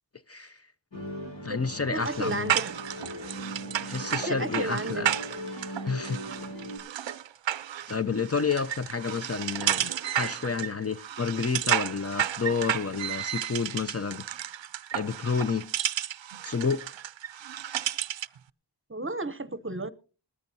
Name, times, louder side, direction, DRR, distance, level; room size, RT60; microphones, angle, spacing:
voice 1, 0.3-0.6 1.4-2.5 3.8-5.1 5.8-6.2 7.8-14.2 14.9-15.6 16.4-16.8, left 5 dB, 35° left, 0.5 m, -30 dB
Musical instrument, 0.9-6.8, equal, 85° left, 6.0 m, -39 dB
voice 2, 1.9-2.8 4.3-5.1 18.9-19.9, right 2 dB, 30° right, 0.7 m, -32 dB
sound 1, 2.0-18.4, right 10 dB, 80° right, 0.5 m, -32 dB
20.0 x 13.5 x 2.7 m
wide cardioid pair, 55°, 45 cm